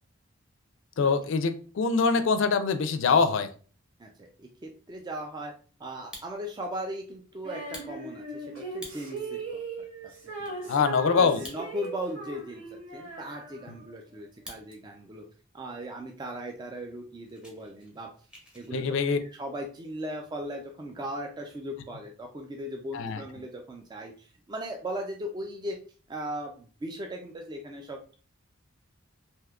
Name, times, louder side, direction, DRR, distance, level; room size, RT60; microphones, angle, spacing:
voice 1, 1.0-3.5 10.7-11.4 18.7-19.2 22.9-23.2, left 5 dB, 65° left, 10 dB, 0.4 m, -24 dB
voice 2, 4.0-5.5 5.8-9.6 10.4-10.8 11.2-15.3 15.5-18.1 18.5-25.8 26.1-28.2, right 1 dB, 20° right, 2 dB, 0.3 m, -38 dB
Fire, 5.9-6.7 7.1-7.2 7.6-9.3 9.8-9.9 10.1-10.5 11.3-12.1 12.4-12.5 13.0-14.8 15.1-15.5 16.1-16.2 16.5-16.7 16.9-18.7, equal, 5° right, 0.8 m, -48 dB
Female singing, 7.4-13.9, right 3 dB, 70° right, 1.0 m, -39 dB
3.5 x 2.7 x 2.3 m, 0.39 s
head